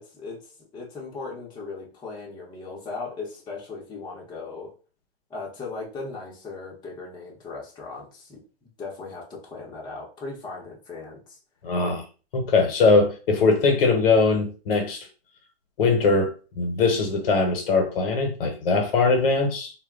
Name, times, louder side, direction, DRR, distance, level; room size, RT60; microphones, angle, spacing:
voice 1, 0.0-4.7 5.3-8.4 8.8-11.4, left 3 dB, 15° left, 0.7 m, -38 dB
voice 2, 11.6-12.0 12.3-15.0 15.8-19.7, left 3 dB, 65° left, 0.9 m, -21 dB
2.2 x 2.1 x 3.6 m
hypercardioid pair, 125°, 31 cm